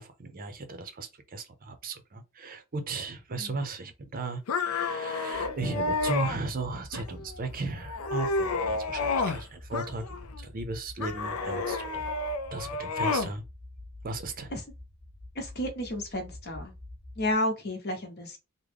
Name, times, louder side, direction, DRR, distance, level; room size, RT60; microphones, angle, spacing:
voice 1, 0.0-12.1 12.5-13.4 14.0-14.5, right 3 dB, 40° right, 0.6 m, -36 dB
sound 1, 4.5-6.4 6.9-7.4 7.8-9.4 9.7-10.4 11.0-13.3, left 3 dB, 75° left, 0.5 m, -30 dB
sound 2, 5.3-17.3, left 1 dB, 15° left, 1.0 m, -47 dB
voice 2, 15.3-16.7 17.2-18.4, left 1 dB, 45° left, 0.9 m, -32 dB
3.6 x 2.1 x 3.4 m
head